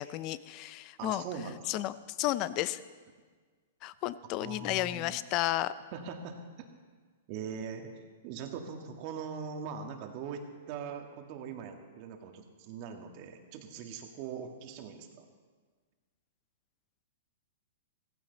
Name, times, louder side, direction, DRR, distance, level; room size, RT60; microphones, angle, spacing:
voice 1, 0.0-1.2 1.7-2.8 3.8-5.7, left 15 dB, 40° left, 16 dB, 0.5 m, -32 dB
voice 2, 1.0-1.9 4.4-5.2 5.9-6.4 7.3-15.3, right 6 dB, 45° right, 4 dB, 1.9 m, -41 dB
16.0 x 15.0 x 4.1 m, 1.5 s
hypercardioid pair, 130°, 0 cm